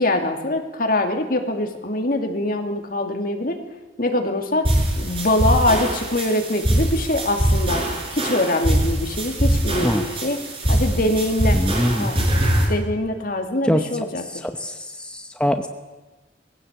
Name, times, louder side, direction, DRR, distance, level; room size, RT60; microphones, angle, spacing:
voice 1, 0.0-3.6 4.0-4.7 5.0-7.9 8.1-10.4 10.7-11.6 11.9-12.2 12.6-14.5, left 1 dB, 50° left, 4 dB, 2.7 m, -23 dB
sound 1, 4.6-12.6, right 1 dB, 30° right, 5.9 m, -22 dB
voice 2, 11.6-12.1 13.7-13.8 14.4-15.7, equal, 5° left, 6 dB, 0.9 m, -23 dB
21.5 x 16.5 x 8.3 m, 1.2 s
head